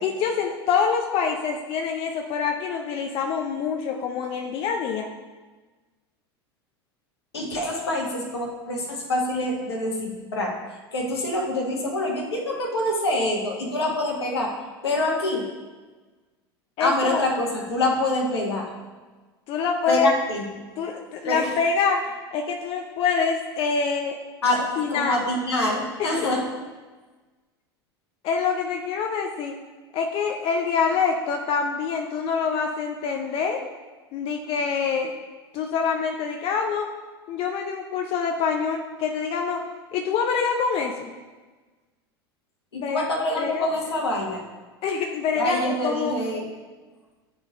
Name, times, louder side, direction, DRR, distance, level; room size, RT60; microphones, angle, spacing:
voice 1, 0.0-5.1 16.8-17.2 19.5-20.1 20.8-24.2 24.8-25.3 26.0-26.1 28.2-29.6 29.9-33.6 34.1-35.1 35.5-36.9 37.3-39.6 39.9-41.1 42.7-43.1 43.4-43.7 44.8-46.2, left 5 dB, 45° left, 2 dB, 0.6 m, -25 dB
voice 2, 7.3-10.6 10.9-14.5 14.8-15.5 16.8-18.7 19.9-20.4 21.3-21.5 24.4-26.4 42.7-44.4 45.3-46.4, left 1 dB, 80° left, 0 dB, 1.4 m, -25 dB
10.5 x 3.6 x 3.6 m, 1.3 s
hypercardioid pair, 85°, 13 cm